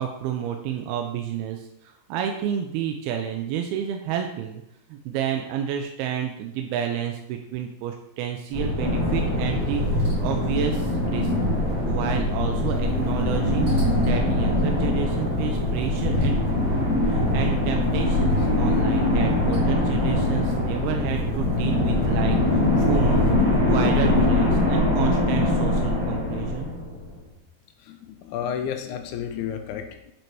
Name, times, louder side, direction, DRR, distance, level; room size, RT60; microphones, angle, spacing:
voice 1, 0.0-1.7 2.1-4.6 4.9-9.8 10.2-11.3 11.9-16.4 17.1-23.4 23.7-26.7, right 9 dB, 80° right, 3 dB, 2.4 m, -30 dB
sound 1, 8.5-23.3, left 1 dB, 35° right, 1.6 m, -27 dB
sound 2, 8.8-27.2, left 2 dB, 55° right, 4.0 m, -24 dB
voice 2, 27.8-30.1, left 8 dB, 85° left, 6 dB, 2.6 m, -32 dB
7.9 x 4.5 x 4.6 m, 0.81 s
omnidirectional pair, 4.7 m